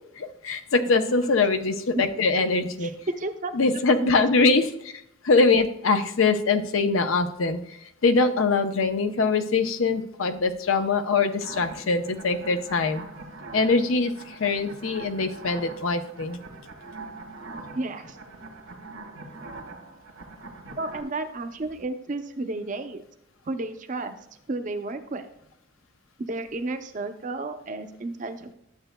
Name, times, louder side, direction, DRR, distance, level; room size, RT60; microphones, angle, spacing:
voice 1, 0.2-2.9 3.5-13.0 13.5-16.4, left 3 dB, 80° left, 8 dB, 0.7 m, -23 dB
voice 2, 2.8-4.1 17.7-18.2 20.8-23.0 23.5-24.2 24.5-25.3 26.2-28.5, right 2 dB, 40° right, 8 dB, 0.6 m, -32 dB
sound 1, 11.4-21.0, right 3 dB, 75° right, 1.4 m, -42 dB
11.5 x 7.8 x 2.2 m, 0.82 s
head